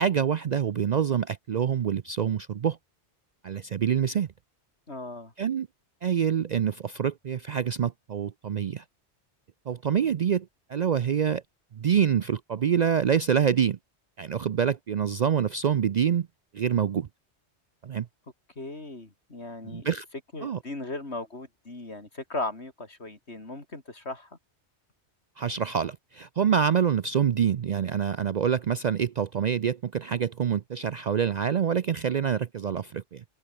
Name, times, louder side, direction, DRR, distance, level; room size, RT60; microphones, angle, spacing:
voice 1, 0.0-2.8 3.4-4.3 5.4-5.7 6.0-8.8 9.7-11.4 11.7-13.8 14.2-16.3 16.5-17.1 17.8-18.1 19.6-20.1 20.4-20.6 25.4-33.2, right 8 dB, 55° right, 0.5 m, -26 dB
voice 2, 4.9-5.3 18.6-19.9 20.3-24.3, left 2 dB, 70° left, 4.4 m, -37 dB
omnidirectional pair, 1.2 m